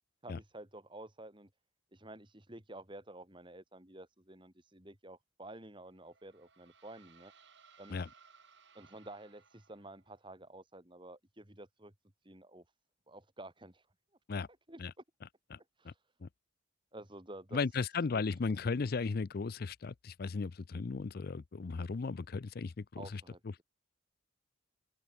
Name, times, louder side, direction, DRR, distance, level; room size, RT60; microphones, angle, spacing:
voice 1, 0.2-1.5 1.9-7.3 7.8-8.0 8.7-11.9 12.2-12.6 13.1-13.9 14.7-15.0 15.8-16.0 16.9-17.8 18.1-18.2 18.5-18.8 23.0-23.6, right 1 dB, 25° right, 2.7 m, -51 dB
sound 1, 5.8-10.2, right 5 dB, 55° right, 4.7 m, -63 dB
voice 2, 17.5-23.2, left 4 dB, 45° left, 0.4 m, -36 dB
open air
head